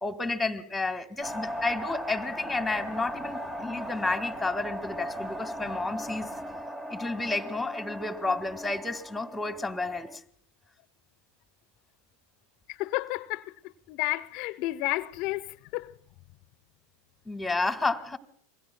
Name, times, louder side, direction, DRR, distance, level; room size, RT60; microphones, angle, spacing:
voice 1, 0.0-6.3 6.9-10.2 17.2-18.2, left 3 dB, 5° left, 1.6 m, -31 dB
sound 1, 1.2-10.2, equal, 15° right, 1.0 m, -38 dB
voice 2, 12.7-16.0, left 19 dB, 55° left, 0.7 m, -32 dB
27.5 x 22.0 x 2.2 m
hypercardioid pair, 95°, 0 cm